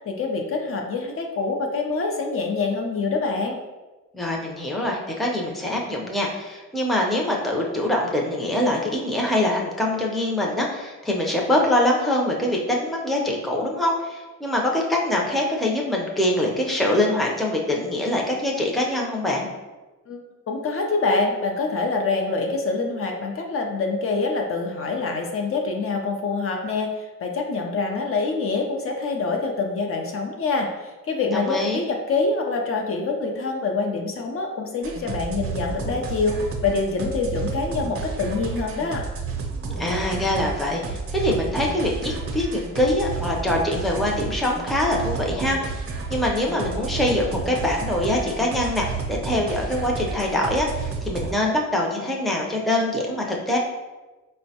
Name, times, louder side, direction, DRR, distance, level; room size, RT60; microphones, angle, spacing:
voice 1, 0.0-3.6 20.1-20.2 20.5-39.1, left 3 dB, 45° left, 2 dB, 0.5 m, -25 dB
voice 2, 4.1-19.5 31.3-31.8 39.8-45.8 46.1-53.6, left 1 dB, ahead, -2 dB, 0.5 m, -24 dB
sound 1, 34.8-51.4, right 4 dB, 45° right, 0.6 m, -31 dB
4.3 x 2.1 x 2.8 m, 1.2 s
cardioid pair, 90°, 30 cm